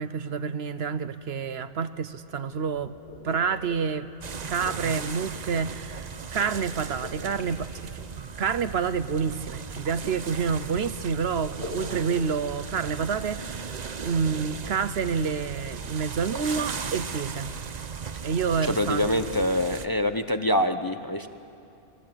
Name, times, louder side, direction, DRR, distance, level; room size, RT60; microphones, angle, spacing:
voice 1, 0.0-3.0 3.2-4.1 4.5-8.0 8.4-13.7 14.0-17.5 18.2-19.2, right 6 dB, 70° right, 13 dB, 1.0 m, -28 dB
sound 1, 2.5-13.0, left 3 dB, 80° left, 5.1 m, -46 dB
sound 2, 4.2-19.9, right 6 dB, 45° right, 0.8 m, -37 dB
voice 2, 18.7-21.3, left 1 dB, 20° left, 8 dB, 0.7 m, -25 dB
27.0 x 21.0 x 8.8 m, 2.6 s
omnidirectional pair, 1.1 m